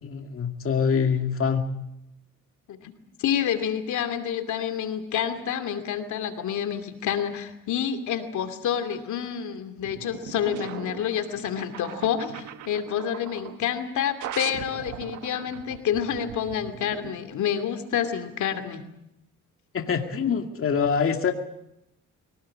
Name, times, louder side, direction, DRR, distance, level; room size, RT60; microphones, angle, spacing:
voice 1, 0.0-1.7 19.7-21.3, left 6 dB, 45° left, 4 dB, 2.3 m, -25 dB
voice 2, 3.2-18.8, left 9 dB, 75° left, 8 dB, 2.6 m, -28 dB
sound 1, 9.8-13.6 14.2-17.2, right 11 dB, 85° right, 1.5 m, -40 dB
23.5 x 18.5 x 8.7 m, 0.84 s
cardioid pair, 90°, 30 cm